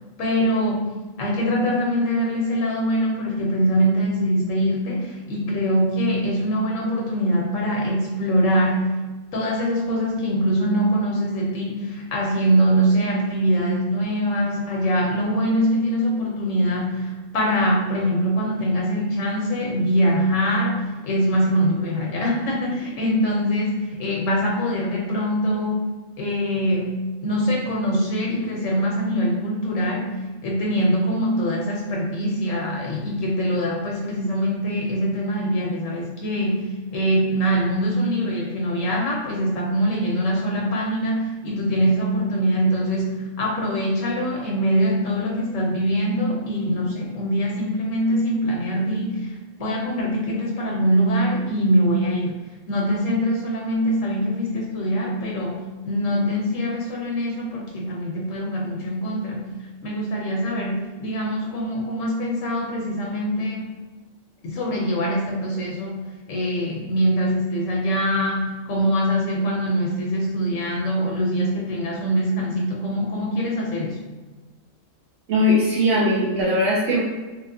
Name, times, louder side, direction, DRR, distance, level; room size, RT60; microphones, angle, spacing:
voice 1, 0.2-9.0 9.3-25.9 26.2-30.1 30.4-52.4 52.7-59.5 59.8-63.7 64.4-66.0 66.3-74.0, equal, 80° left, -2 dB, 1.0 m, -23 dB
voice 2, 75.3-77.0, left 1 dB, 70° right, -6 dB, 1.0 m, -19 dB
3.1 x 2.8 x 2.6 m, 1.2 s
omnidirectional pair, 1.3 m